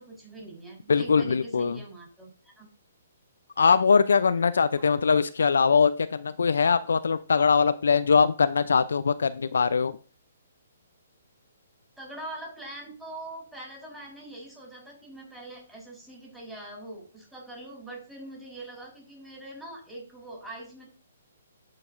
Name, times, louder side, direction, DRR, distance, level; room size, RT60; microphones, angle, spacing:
voice 1, 0.0-2.7 4.8-4.9 12.0-20.9, right 1 dB, 5° right, 3.5 m, -43 dB
voice 2, 0.9-1.8 3.6-10.0, left 5 dB, 80° left, 0.4 m, -22 dB
13.5 x 4.7 x 2.5 m
hypercardioid pair, 140°, 0 cm